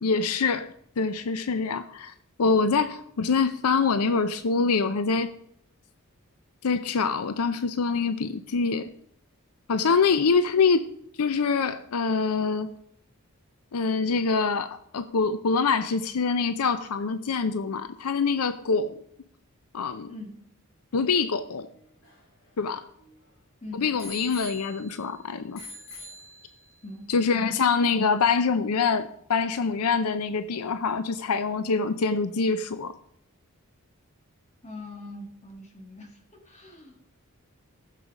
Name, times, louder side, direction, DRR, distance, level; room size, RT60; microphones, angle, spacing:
voice 1, 0.0-2.1 2.4-5.3 6.6-8.9 9.7-10.9 11.2-12.7 13.7-18.9 19.7-20.1 20.9-21.7 22.6-22.9 23.8-25.6 27.1-32.9, left 5 dB, 85° left, 0.6 m, -25 dB
Bicycle bell, 21.7-23.3 24.0-25.1 25.5-26.8 27.5-27.6, left 1 dB, 60° left, 3.7 m, -45 dB
voice 2, 34.6-37.0, left 2 dB, 30° left, 2.2 m, -42 dB
15.0 x 6.7 x 4.9 m
head